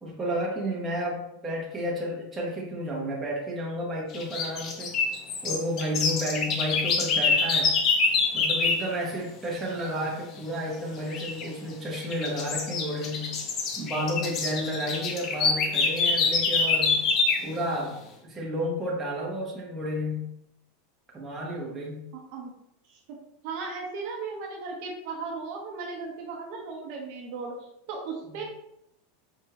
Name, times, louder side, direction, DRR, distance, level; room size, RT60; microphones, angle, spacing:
voice 1, 0.0-4.9 5.4-7.8 8.3-13.3 13.8-17.0 17.4-20.3 21.1-22.1 28.3-28.4, equal, 10° right, -4 dB, 0.9 m, -31 dB
sound 1, 4.1-8.9 11.1-11.5 11.9-17.5, left 4 dB, 35° left, 0.5 m, -26 dB
voice 2, 22.1-22.5 22.9-23.2 23.4-28.4, right 4 dB, 55° right, 0 dB, 0.7 m, -36 dB
4.6 x 2.6 x 2.9 m, 0.80 s
supercardioid pair, 160°, 0 cm